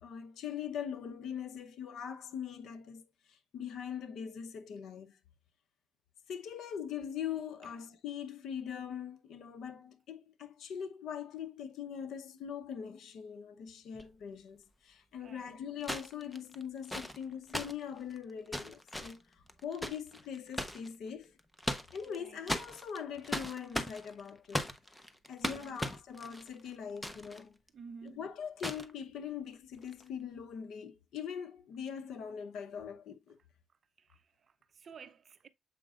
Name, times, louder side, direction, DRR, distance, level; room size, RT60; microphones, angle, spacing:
voice 1, 0.0-5.2 6.3-21.3 21.9-24.7 25.3-27.6 28.0-33.4, left 8 dB, 75° left, 0.8 m, -42 dB
sound 1, 13.9-14.0 15.8-20.9 21.4-22.2 22.5-27.4 27.7-27.8 28.6-28.9 29.8-30.0, equal, 5° left, 0.9 m, -38 dB
voice 2, 15.2-15.6 22.2-22.4 25.4-25.8 27.7-28.2 34.0-35.5, right 5 dB, 50° right, 0.5 m, -52 dB
7.6 x 5.1 x 2.4 m
cardioid pair, 90°, 0 cm